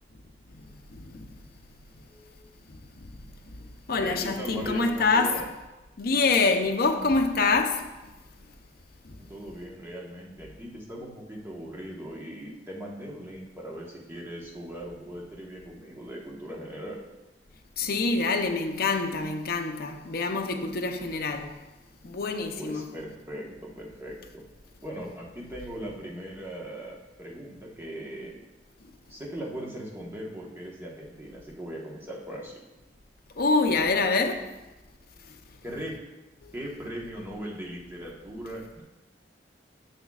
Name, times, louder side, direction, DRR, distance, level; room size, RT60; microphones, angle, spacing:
voice 1, 0.9-1.3 2.0-2.4 3.0-3.1 3.5-3.6 3.9-5.5 6.0-7.9 9.0-9.2 17.8-21.5 22.0-22.9 33.4-34.5 36.4-36.5, left 3 dB, 55° left, 0.7 m, -26 dB
voice 2, 4.0-5.5 9.2-17.0 22.6-24.4 24.8-28.3 29.1-32.6 35.6-36.0 36.5-38.8, right 1 dB, 15° right, 1.3 m, -39 dB
10.0 x 6.9 x 2.4 m
head